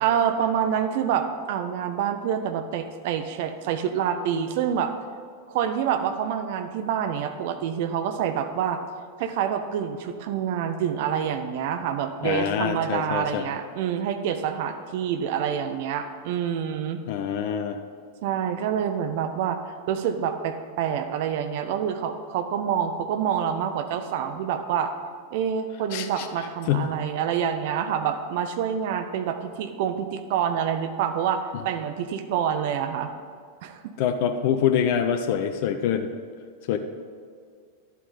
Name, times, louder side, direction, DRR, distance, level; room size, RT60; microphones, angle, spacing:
voice 1, 0.0-4.9 5.5-8.8 9.2-17.0 18.2-19.6 19.9-24.9 25.3-33.1 33.6-33.9, right 8 dB, 50° right, 8 dB, 0.6 m, -27 dB
voice 2, 12.2-13.5 17.1-17.8 25.9-26.3 26.7-26.9 34.0-36.1 36.7-36.8, left 8 dB, 50° left, 8 dB, 0.6 m, -25 dB
11.0 x 8.3 x 4.0 m, 2.1 s
figure-of-eight pair, 90°, 0 cm